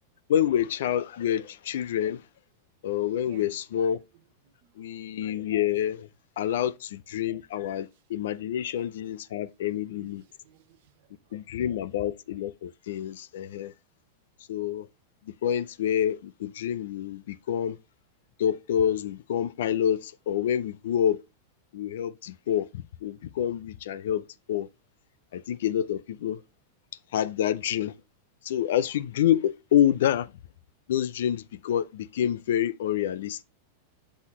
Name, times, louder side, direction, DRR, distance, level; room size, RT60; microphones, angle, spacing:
voice 1, 0.3-2.2 2.8-4.0 4.8-6.1 6.4-10.2 11.3-13.7 14.5-14.9 15.4-17.8 18.4-21.2 21.7-24.7 25.3-26.4 27.1-27.9 28.4-30.3 30.9-33.4, left 10 dB, 65° left, 0.4 m, -27 dB
voice 2, 3.2-3.6 3.9-4.0 4.6-5.0 8.6-8.7 9.7-11.4, right 14 dB, 45° right, 0.8 m, -58 dB
6.2 x 5.7 x 3.1 m
supercardioid pair, 175°, 0 cm